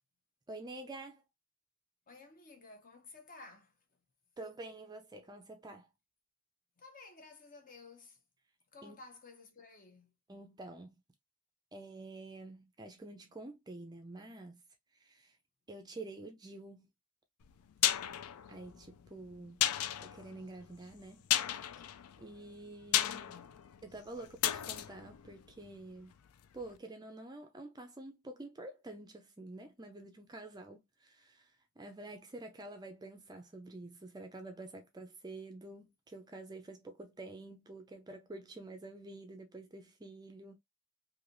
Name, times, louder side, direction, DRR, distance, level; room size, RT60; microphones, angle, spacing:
voice 1, 0.5-1.2 4.4-5.9 8.8-9.0 10.3-11.0 11.7-14.6 14.9-15.4 15.7-16.9 18.5-19.6 20.0-21.3 22.2-23.2 23.8-26.1 26.5-40.6, right 2 dB, 20° right, 0.4 m, -48 dB
voice 2, 2.1-3.8 6.8-8.2 8.7-10.2 23.0-23.6, left 3 dB, 40° left, 0.8 m, -54 dB
sound 1, 17.4-26.3 26.6-26.7, left 12 dB, 85° left, 0.4 m, -35 dB
3.3 x 2.6 x 2.5 m
head